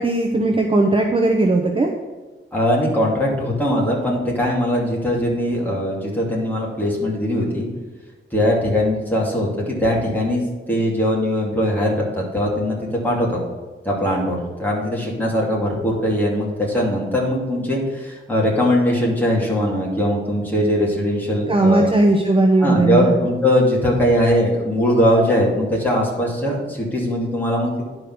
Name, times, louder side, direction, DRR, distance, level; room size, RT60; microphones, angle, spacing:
voice 1, 0.0-1.9 21.5-23.2, right 2 dB, 25° right, 2 dB, 0.8 m, -17 dB
voice 2, 2.5-7.7 8.3-13.4 13.8-21.9 22.6-27.8, equal, 10° left, -4 dB, 2.6 m, -20 dB
10.5 x 5.1 x 6.2 m, 1.3 s
wide cardioid pair, 175°, 21 cm